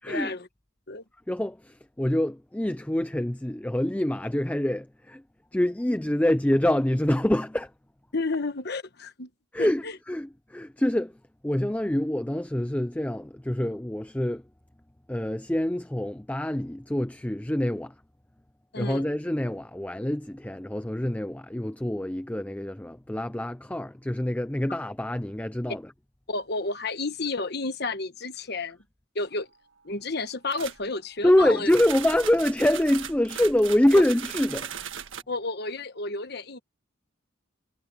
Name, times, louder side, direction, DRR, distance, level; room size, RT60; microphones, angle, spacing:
voice 1, 0.1-0.5 0.9-1.0 8.1-9.3 9.6-10.0 18.7-19.1 26.3-28.8 29.1-29.5 29.8-31.7 35.3-36.6, left 3 dB, 50° left, 1.3 m, -31 dB
voice 2, 1.3-5.2 5.5-7.7 9.5-11.1 11.4-14.4 15.1-17.9 18.8-25.8 31.2-34.7, left 1 dB, 5° left, 0.4 m, -25 dB
sound 1, 30.5-30.8 31.7-35.2, right 8 dB, 70° right, 1.6 m, -37 dB
head